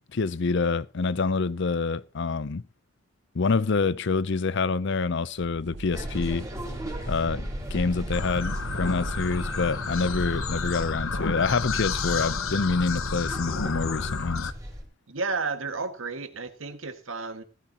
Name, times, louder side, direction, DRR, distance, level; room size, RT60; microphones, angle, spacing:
voice 1, 0.0-2.6 3.3-6.5 7.1-14.5, left 4 dB, 60° left, 0.6 m, -27 dB
sound 1, 5.4-11.4, right 3 dB, 60° right, 0.6 m, -42 dB
sound 2, 5.9-14.8, equal, 15° right, 4.7 m, -35 dB
sound 3, 8.1-14.5, left 5 dB, 85° left, 1.0 m, -31 dB
voice 2, 15.1-17.4, right 4 dB, 75° right, 1.9 m, -32 dB
15.5 x 14.5 x 2.9 m
head